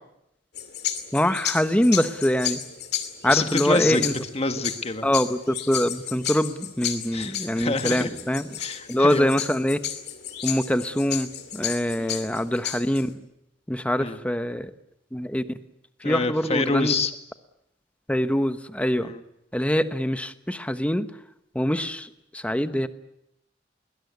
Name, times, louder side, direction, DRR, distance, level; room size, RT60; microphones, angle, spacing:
sound 1, 0.5-13.1, left 10 dB, 60° left, 2.7 m, -33 dB
voice 1, 1.1-2.6 3.2-4.1 5.0-8.5 8.9-9.8 10.4-13.2 13.7-14.7 15.1-15.6 16.0-16.9 18.1-19.1 19.5-21.1 21.5-22.9, equal, 5° left, 11 dB, 1.0 m, -24 dB
voice 2, 3.2-5.1 7.1-8.1 8.6-9.3 12.0-12.2 14.0-14.2 16.0-17.1 19.0-19.2, left 3 dB, 35° left, 8 dB, 1.7 m, -27 dB
21.5 x 20.0 x 9.6 m, 0.82 s
head